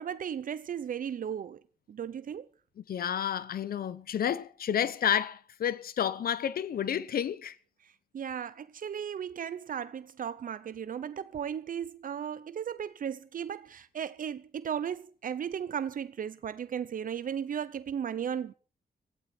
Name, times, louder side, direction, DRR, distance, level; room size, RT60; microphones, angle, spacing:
voice 1, 0.0-1.6 1.9-2.5 7.8-18.5, right 8 dB, 65° right, 0.8 m, -36 dB
voice 2, 2.9-7.5, left 9 dB, 85° left, 0.9 m, -30 dB
17.5 x 15.5 x 4.5 m
wide cardioid pair, 130°, 15 cm